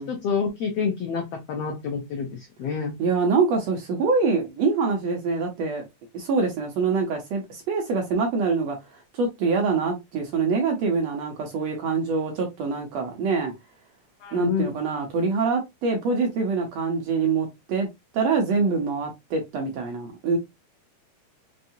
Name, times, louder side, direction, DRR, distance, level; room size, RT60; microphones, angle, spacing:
voice 1, 0.0-2.9 14.2-14.7, left 6 dB, 85° left, 1.3 m, -28 dB
voice 2, 3.0-5.8 6.1-13.5 14.3-17.9 18.1-20.4, right 4 dB, 70° right, 1.7 m, -25 dB
5.5 x 2.7 x 2.7 m
omnidirectional pair, 3.8 m